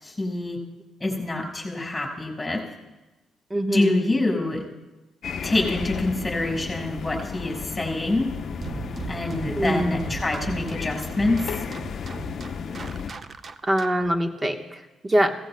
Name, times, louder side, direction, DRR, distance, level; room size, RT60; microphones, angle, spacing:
voice 1, 0.0-0.6 1.0-2.6 3.7-4.6 5.4-8.3 9.1-11.6, left 2 dB, 10° left, 1 dB, 4.9 m, -26 dB
voice 2, 3.5-4.0 9.6-10.0 13.6-15.3, right 1 dB, 20° right, 5 dB, 1.1 m, -23 dB
sound 1, 5.2-13.1, left 6 dB, 55° left, 0.7 m, -34 dB
sound 2, 8.6-14.1, right 5 dB, 40° right, 0.6 m, -37 dB
17.0 x 15.5 x 2.2 m, 1.1 s
cardioid pair, 90°, 0 cm